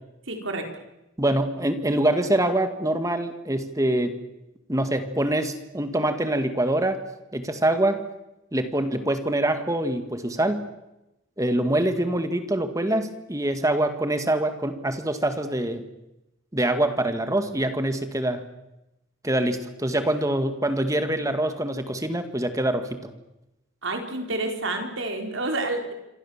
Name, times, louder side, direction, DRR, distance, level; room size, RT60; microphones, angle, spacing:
voice 1, 0.3-0.6 23.8-25.9, right 2 dB, 70° right, 4 dB, 4.7 m, -29 dB
voice 2, 1.2-4.1 4.7-7.0 7.3-8.0 8.5-10.7 11.4-15.9 16.5-18.4 19.2-23.0, right 1 dB, 15° right, 8 dB, 1.9 m, -24 dB
27.0 x 25.0 x 7.4 m, 0.94 s
head